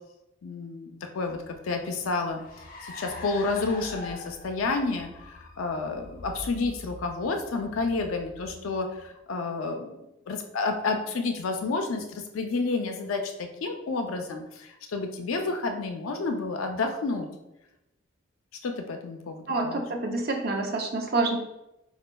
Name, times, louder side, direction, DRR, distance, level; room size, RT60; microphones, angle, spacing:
voice 1, 0.4-2.4 2.8-17.3 18.6-19.8, left 3 dB, 90° left, 4 dB, 0.5 m, -30 dB
Car, 1.3-9.1, left 2 dB, 45° left, 0.6 m, -44 dB
voice 2, 19.5-21.4, right 3 dB, 50° right, 2 dB, 0.6 m, -27 dB
5.1 x 2.3 x 2.2 m, 0.92 s
head